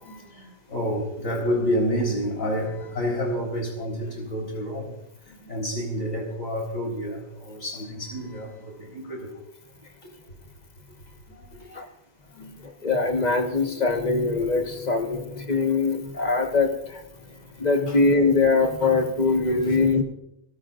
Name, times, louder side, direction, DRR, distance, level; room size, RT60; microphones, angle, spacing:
voice 1, 0.0-4.9 5.3-9.4 11.3-11.8 12.3-12.5 12.8-12.9 17.2-17.3 17.9-18.0 19.6-19.8, equal, 70° left, 0 dB, 4.3 m, -29 dB
voice 2, 12.8-17.0 17.6-20.0, left 3 dB, 30° left, 4 dB, 1.4 m, -22 dB
29.5 x 13.0 x 2.5 m, 0.80 s
omnidirectional pair, 1.4 m